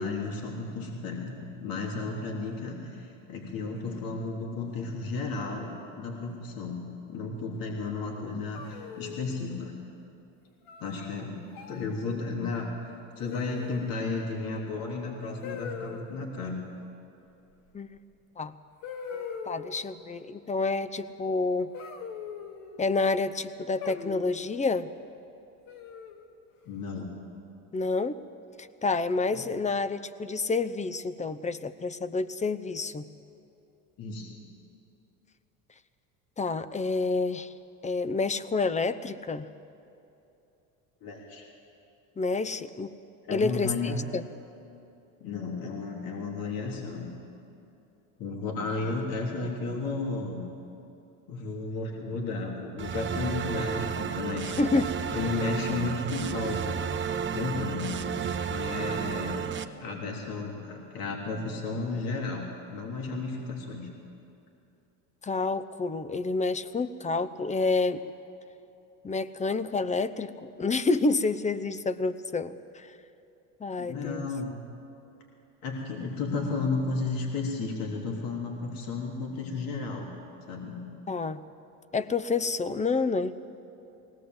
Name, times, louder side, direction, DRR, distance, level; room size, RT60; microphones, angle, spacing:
voice 1, 0.0-9.8 10.8-11.4 11.7-12.7 13.2-16.6 26.7-27.1 29.3-29.4 34.0-34.4 41.0-41.4 43.2-44.0 45.2-47.1 48.2-50.5 51.3-54.5 55.1-56.9 57.3-58.1 58.5-59.4 59.8-63.9 73.8-74.5 75.6-80.1 80.5-80.9, left 3 dB, 60° left, -1 dB, 3.6 m, -33 dB
sound 1, 8.5-9.4 10.7-11.1 11.5-11.9 13.3-13.9 15.4-16.0 17.9-18.0 18.8-19.8 21.7-22.8 23.8-24.4 25.7-26.2, left 6 dB, 80° left, 1.9 m, -40 dB
voice 2, 19.1-21.7 22.8-24.9 27.7-28.2 28.6-33.1 36.4-37.5 37.8-39.5 42.2-42.9 43.3-44.2 54.6-54.9 65.2-68.0 69.0-72.9 73.6-74.3 81.1-81.4 81.9-83.3, left 3 dB, 20° left, 14 dB, 0.8 m, -29 dB
sound 2, 52.8-59.6, right 7 dB, 30° right, 1.1 m, -32 dB
20.5 x 18.0 x 7.9 m, 2.8 s
supercardioid pair, 95°, 40 cm